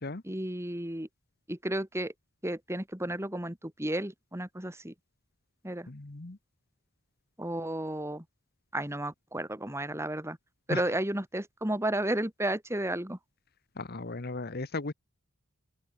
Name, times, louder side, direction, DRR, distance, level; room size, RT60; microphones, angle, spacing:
voice 1, 0.2-1.1 1.5-2.1 2.4-4.9 5.6-5.9 7.4-8.2 8.7-10.4 10.7-13.2, right 1 dB, 15° right, 2.1 m, -32 dB
voice 2, 5.9-6.4 10.7-10.8 13.8-14.9, left 2 dB, 45° left, 1.1 m, -36 dB
open air
head